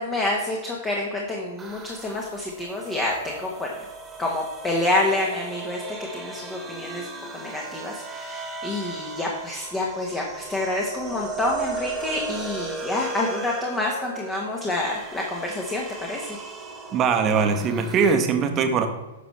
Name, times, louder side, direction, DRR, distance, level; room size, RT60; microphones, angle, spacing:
voice 1, 0.0-3.7 4.2-7.1 7.3-16.4, left 2 dB, 15° left, -1 dB, 1.3 m, -28 dB
sound 1, 1.6-18.1, right 4 dB, 10° right, 1.7 m, -37 dB
voice 2, 16.9-18.9, right 5 dB, 30° right, 6 dB, 1.1 m, -21 dB
10.5 x 6.1 x 3.3 m, 1.1 s
figure-of-eight pair, 110°, 0 cm